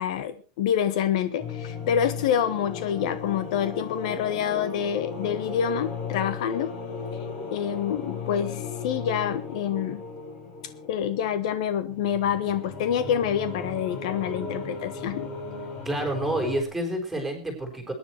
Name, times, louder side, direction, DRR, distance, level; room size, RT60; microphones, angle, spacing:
voice 1, 0.0-6.7 7.5-10.0 10.9-15.3, left 9 dB, 65° left, 12 dB, 1.4 m, -27 dB
sound 1, 1.4-16.6, left 4 dB, 30° left, 4.5 m, -36 dB
voice 2, 15.8-17.9, right 1 dB, ahead, 2 dB, 4.5 m, -28 dB
21.0 x 10.5 x 4.5 m, 0.34 s
supercardioid pair, 160°, 4 cm